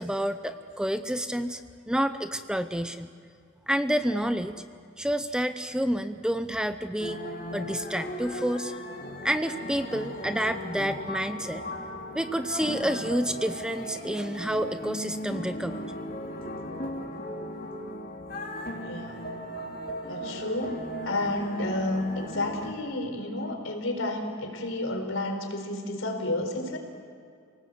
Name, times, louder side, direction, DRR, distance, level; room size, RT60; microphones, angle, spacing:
voice 1, 0.0-1.6 1.9-3.1 3.7-4.6 5.0-7.2 7.5-8.8 9.2-11.7 12.1-15.8, equal, 5° right, 9 dB, 0.6 m, -29 dB
sound 1, 7.0-22.7, equal, 45° left, 2.7 m, -37 dB
voice 2, 18.8-19.3 20.0-26.8, left 2 dB, 90° left, 3 dB, 4.4 m, -31 dB
29.0 x 18.5 x 8.0 m, 2.3 s
head